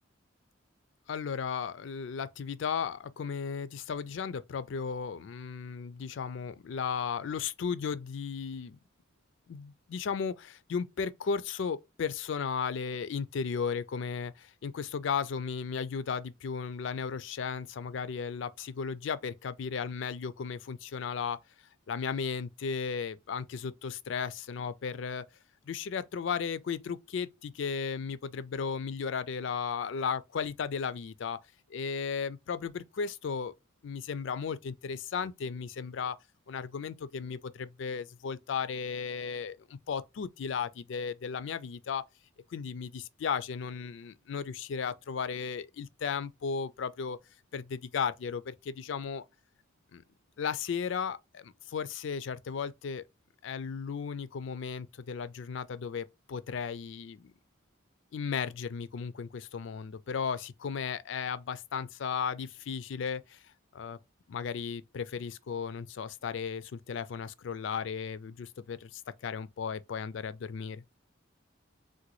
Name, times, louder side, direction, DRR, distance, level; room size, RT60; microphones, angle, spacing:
voice 1, 1.1-8.8 9.5-21.4 21.9-25.2 25.6-31.4 31.7-33.5 33.8-36.2 36.5-42.0 42.5-47.2 47.5-49.2 49.9-50.0 50.4-53.0 53.4-57.3 58.1-63.4 63.7-64.0 64.3-70.8, left 6 dB, 65° left, 0.4 m, -35 dB
3.8 x 2.2 x 3.0 m
head